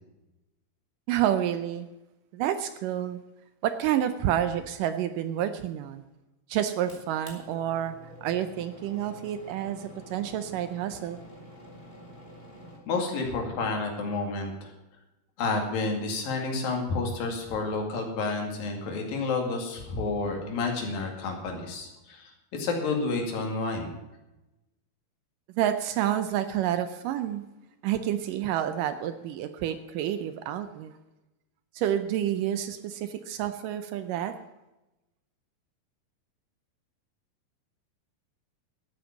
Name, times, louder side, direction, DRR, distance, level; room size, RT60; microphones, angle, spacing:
voice 1, 1.1-1.9 2.3-3.2 3.6-6.0 6.5-11.2 25.6-27.4 27.8-30.9 31.7-34.4, right 11 dB, 80° right, 10 dB, 2.1 m, -29 dB
sound 1, 6.9-12.8, equal, 15° left, 2.6 m, -48 dB
voice 2, 12.9-14.7 15.4-23.9, left 3 dB, 70° left, 2 dB, 4.0 m, -30 dB
12.5 x 9.0 x 7.2 m, 1.0 s
omnidirectional pair, 4.2 m